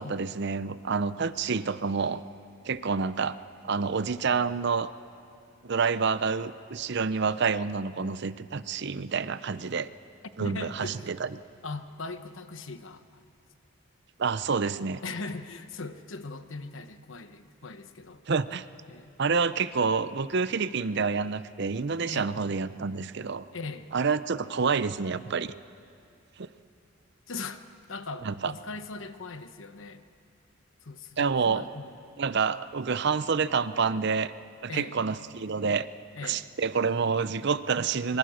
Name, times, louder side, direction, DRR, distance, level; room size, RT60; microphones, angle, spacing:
voice 1, 0.0-2.2 2.6-3.4 3.6-4.9 5.6-9.9 10.4-11.3 14.2-15.0 18.3-18.7 19.2-23.4 23.9-25.5 26.4-26.5 28.2-28.5 31.2-31.6 32.2-34.3 34.6-35.9 36.2-38.2, right 5 dB, 55° right, 14 dB, 0.6 m, -28 dB
voice 2, 10.4-11.1 11.6-13.2 15.0-18.2 18.9-19.2 22.1-22.4 23.5-23.9 27.3-30.0 30.8-32.0 34.7-35.0 36.1-36.5, left 3 dB, 65° left, 10 dB, 1.1 m, -39 dB
25.0 x 23.5 x 6.4 m, 2.4 s
head